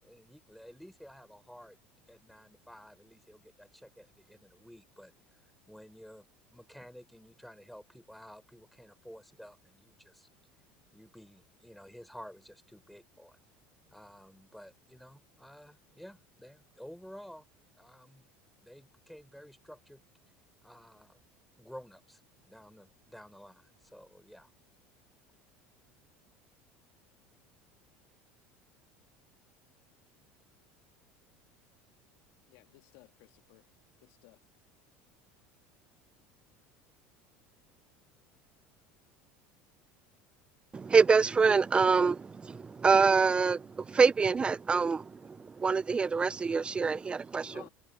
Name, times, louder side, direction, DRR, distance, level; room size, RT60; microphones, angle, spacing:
voice 1, 0.0-1.8 2.1-5.4 5.7-10.3 10.9-13.4 13.9-17.4 17.8-18.3 18.6-20.0 20.6-21.2 21.6-24.5, equal, ahead, 4.4 m, -52 dB
voice 2, 32.5-33.7 34.0-34.4 47.5-47.7, left 22 dB, 75° left, 2.2 m, -56 dB
voice 3, 40.7-47.7, right 5 dB, 20° right, 0.5 m, -26 dB
supercardioid pair, 115°, 5 cm